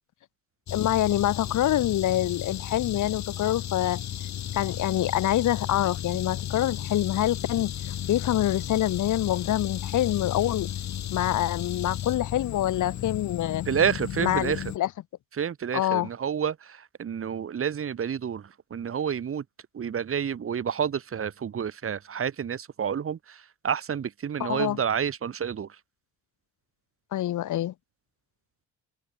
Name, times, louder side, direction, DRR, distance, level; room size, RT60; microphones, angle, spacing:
voice 1, 0.7-4.0 4.5-10.7 11.1-13.7 14.2-14.9 15.7-16.1 24.4-24.8 27.1-27.7, left 13 dB, 80° left, 5.3 m, -26 dB
sound 1, 0.7-14.8, left 10 dB, 65° left, 2.7 m, -34 dB
voice 2, 13.7-14.6 15.3-19.4 19.7-25.7, right 8 dB, 45° right, 1.9 m, -29 dB
cardioid pair, 90°, 30 cm